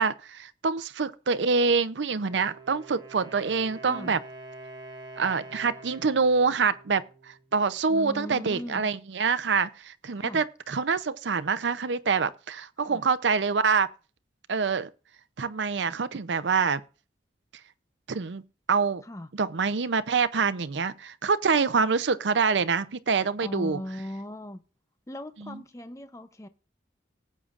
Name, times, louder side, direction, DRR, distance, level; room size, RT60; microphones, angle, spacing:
voice 1, 0.0-4.2 5.2-13.9 14.5-14.9 15.4-16.8 18.1-18.4 18.7-19.0 19.4-23.8 25.5-25.6, right 5 dB, 90° right, 0.6 m, -26 dB
Wind instrument woodwind instrument, 2.1-7.9, right 2 dB, 25° right, 1.6 m, -46 dB
voice 2, 7.9-8.9 10.1-10.5 12.8-13.0 19.0-19.3 23.4-24.6 25.1-26.5, left 1 dB, 15° left, 0.6 m, -38 dB
19.0 x 8.4 x 2.5 m
head